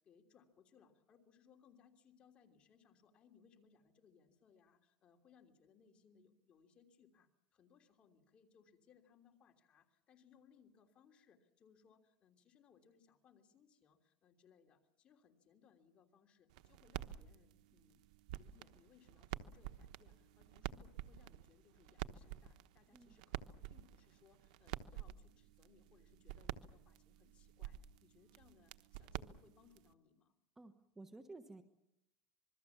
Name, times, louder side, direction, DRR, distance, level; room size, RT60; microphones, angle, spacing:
voice 1, 0.0-18.0 18.4-30.3, left 6 dB, 30° left, 4 dB, 3.2 m, -69 dB
sound 1, 16.5-29.9, right 12 dB, 85° right, 1.1 m, -50 dB
voice 2, 30.6-31.6, right 2 dB, 10° right, 8 dB, 1.2 m, -54 dB
26.5 x 21.5 x 7.2 m, 0.82 s
cardioid pair, 155°, 4 cm